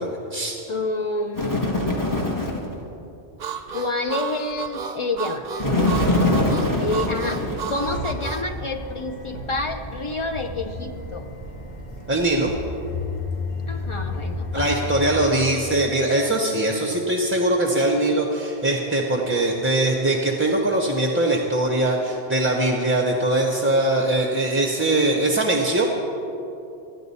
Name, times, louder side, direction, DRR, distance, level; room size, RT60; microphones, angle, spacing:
voice 1, 0.0-0.6 12.1-12.5 14.5-25.8, right 2 dB, 15° right, 1 dB, 0.6 m, -21 dB
voice 2, 0.7-2.0 3.7-5.5 6.6-11.3 13.7-15.3, left 2 dB, 45° left, 6 dB, 0.4 m, -29 dB
Bird, 1.3-2.7 5.6-8.1, left 1 dB, 20° left, 1.1 m, -23 dB
Harmonica, 3.4-8.5, right 7 dB, 50° right, 0.6 m, -33 dB
sound 1, 7.8-15.3, left 3 dB, 60° left, 1.5 m, -32 dB
14.0 x 9.8 x 4.1 m, 2.8 s
omnidirectional pair, 1.1 m